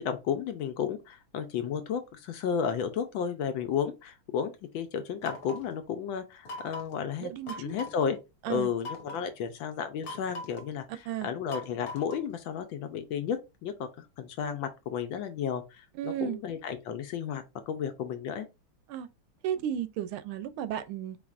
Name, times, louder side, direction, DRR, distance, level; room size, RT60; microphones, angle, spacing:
voice 1, 0.0-7.3 7.6-8.2 8.5-18.5, left 7 dB, 75° left, 1.3 m, -33 dB
sound 1, 5.2-5.7 6.5-7.0 7.5-8.1 8.8-9.3 10.0-10.7 11.5-12.3, left 1 dB, 55° left, 1.2 m, -41 dB
voice 2, 7.2-7.7 8.4-8.7 11.1-11.3 15.9-16.4 18.9-19.1 19.4-21.2, right 10 dB, 80° right, 1.3 m, -33 dB
4.7 x 3.5 x 2.4 m
omnidirectional pair, 2.4 m